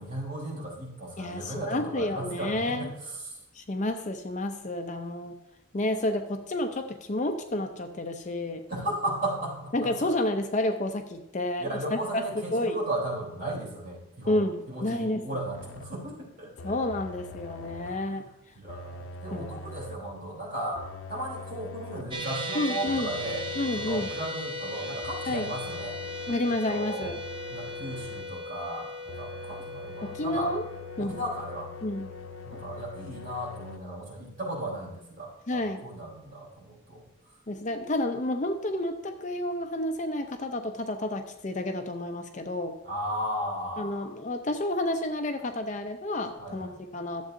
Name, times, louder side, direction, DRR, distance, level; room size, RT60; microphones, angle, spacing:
voice 1, 0.0-3.4 8.7-10.1 11.6-14.4 14.7-16.7 17.8-18.3 18.5-20.8 21.1-23.4 23.8-26.0 26.4-27.1 27.5-30.5 31.0-31.7 32.4-37.4 42.8-44.1 46.4-46.8, right 1 dB, 40° right, -4 dB, 3.4 m, -35 dB
voice 2, 1.2-2.9 3.5-5.4 5.7-8.6 9.7-12.2 12.5-12.8 14.3-15.3 16.6-18.2 19.3-19.6 22.5-23.1 23.6-24.1 25.3-25.5 26.3-27.1 30.0-30.6 31.0-31.2 31.8-32.1 35.5-35.8 37.5-42.8 43.8-47.2, left 1 dB, 35° left, 6 dB, 0.5 m, -30 dB
sound 1, 15.5-16.1 16.6-18.1 18.7-20.1 20.8-22.2 22.9-24.3 25.0-26.5 27.0-28.4 29.1-33.8, left 3 dB, 90° left, 0.6 m, -43 dB
sound 2, 22.1-34.4, left 1 dB, 25° right, 0.5 m, -38 dB
12.5 x 7.4 x 2.6 m, 0.88 s
head